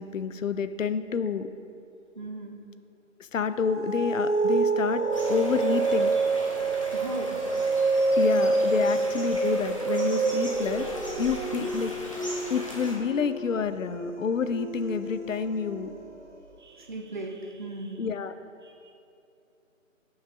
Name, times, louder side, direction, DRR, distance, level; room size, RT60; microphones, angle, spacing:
voice 1, 0.0-1.5 3.2-5.0 5.3-6.1 8.2-10.9 11.2-11.9 12.5-15.9 18.0-18.3, left 6 dB, 70° left, 12 dB, 0.5 m, -28 dB
voice 2, 2.1-2.6 6.9-7.4 7.8-8.0 8.7-8.9 11.6-11.7 16.6-18.1 18.6-18.9, right 2 dB, 35° right, 1 dB, 0.7 m, -38 dB
sound 1, 3.4-16.3, right 3 dB, 60° right, 1.0 m, -27 dB
sound 2, 5.1-13.0, equal, 25° left, 0.8 m, -40 dB
6.7 x 5.5 x 5.9 m, 2.6 s
figure-of-eight pair, 170°, 40 cm